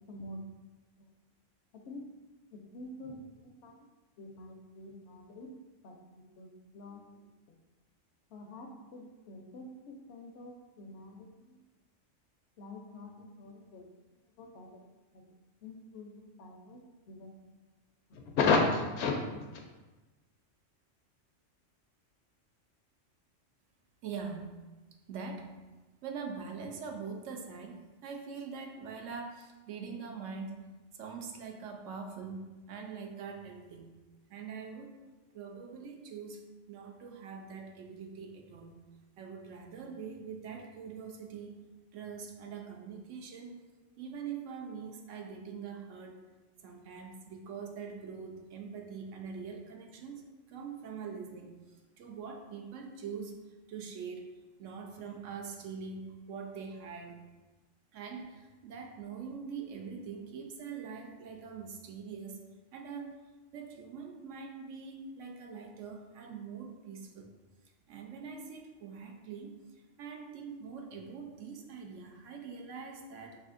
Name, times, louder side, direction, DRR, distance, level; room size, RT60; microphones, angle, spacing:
voice 1, 0.1-0.4 1.9-2.0 2.7-3.7 4.2-5.5 5.8-5.9 6.4-7.0 8.3-11.5 12.6-13.8 14.4-14.7 15.6-16.8 17.1-17.3 18.1-19.4, left 4 dB, 70° left, 2 dB, 0.8 m, -36 dB
voice 2, 24.0-24.6 25.1-25.6 26.0-30.7 31.0-33.9 34.3-35.0 35.3-38.8 39.2-41.6 41.9-43.6 44.0-46.2 46.6-51.6 52.0-53.4 53.7-54.3 54.6-57.2 57.9-63.2 63.5-67.3 67.9-73.4, right 5 dB, 80° right, 3 dB, 0.9 m, -43 dB
5.6 x 2.6 x 2.5 m, 1.2 s
omnidirectional pair, 1.3 m